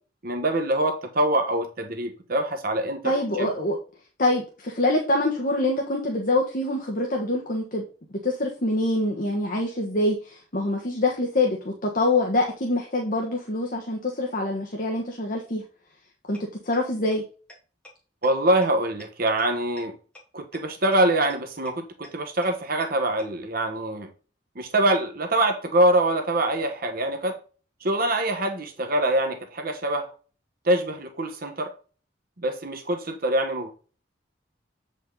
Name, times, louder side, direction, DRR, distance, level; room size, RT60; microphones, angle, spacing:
voice 1, 0.2-3.5 18.2-20.0 20.3-24.1 24.6-27.4 27.8-30.1 30.6-31.7 32.4-33.7, right 1 dB, 50° right, 1.2 m, -24 dB
voice 2, 3.0-3.8 4.2-7.8 8.2-15.6 16.3-16.4 16.6-17.2, left 2 dB, 45° left, 1.3 m, -25 dB
sound 1, 16.3-16.4 16.7-16.8 17.1-17.2 17.5-17.6 17.8-17.9 18.2-18.3 18.6-18.7 19.0-19.1 19.4-19.5 19.8-19.9 20.1-20.2 20.5-20.6 20.9-21.0 21.3-21.4 21.7-21.8 22.0-22.1 22.4-22.5 22.8-22.9 23.2-23.3, left 1 dB, 5° left, 2.5 m, -45 dB
8.2 x 5.2 x 3.9 m
head